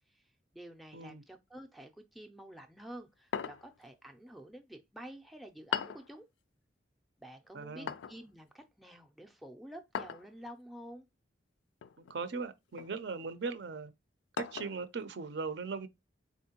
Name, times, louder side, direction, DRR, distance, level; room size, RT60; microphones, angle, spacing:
voice 1, 0.5-6.3 7.2-11.1, right 1 dB, ahead, 0.4 m, -49 dB
sound 1, 3.3-3.9 5.7-6.1 7.9-8.2 9.9-10.3 11.8-12.2 12.8-13.0 14.4-14.8, left 7 dB, 75° left, 0.3 m, -38 dB
voice 2, 7.5-7.9 12.1-13.9 14.4-15.9, right 4 dB, 65° right, 0.5 m, -39 dB
4.2 x 3.6 x 2.8 m
head